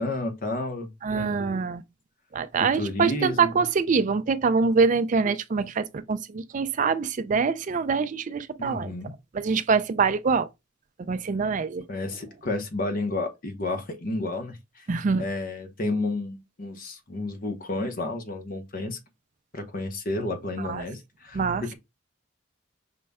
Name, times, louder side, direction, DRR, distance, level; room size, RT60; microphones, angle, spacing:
voice 1, 0.0-1.5 2.7-3.6 8.6-9.1 11.9-19.0 19.5-21.7, left 2 dB, 45° left, 0.7 m, -31 dB
voice 2, 1.0-1.8 2.3-8.9 9.3-10.5 11.0-11.8 14.9-15.2 20.6-20.8 21.3-21.6, right 5 dB, 40° right, 0.3 m, -24 dB
5.2 x 2.2 x 3.4 m
head